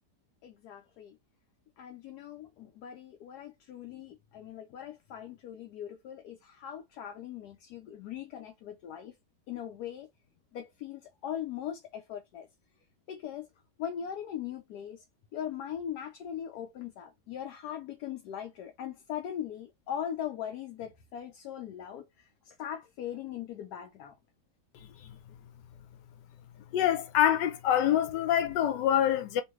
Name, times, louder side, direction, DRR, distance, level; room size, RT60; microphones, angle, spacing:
voice 1, 0.4-1.2 1.8-9.1 9.5-10.1 10.5-12.5 13.1-13.5 13.8-15.0 15.3-24.1, left 9 dB, 70° left, 1.1 m, -40 dB
voice 2, 26.7-29.4, left 10 dB, 90° left, 1.3 m, -26 dB
3.1 x 2.6 x 3.0 m
omnidirectional pair, 1.9 m